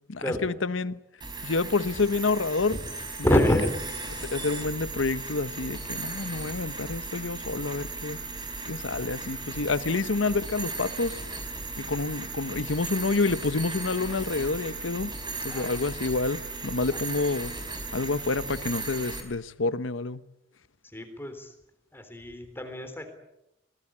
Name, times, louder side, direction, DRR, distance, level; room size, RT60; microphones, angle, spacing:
voice 1, 0.1-1.0 1.4-2.8 3.3-3.4 4.2-8.2 8.6-11.2 11.8-15.2 15.4-17.5 17.9-20.2, left 3 dB, 85° left, 1.0 m, -28 dB
sound 1, 1.2-19.2, right 3 dB, 25° right, 4.5 m, -36 dB
voice 2, 3.2-3.7 15.4-15.7 16.9-17.0 20.9-21.5 21.9-23.1, left 1 dB, 10° left, 3.5 m, -26 dB
25.0 x 19.5 x 8.6 m
head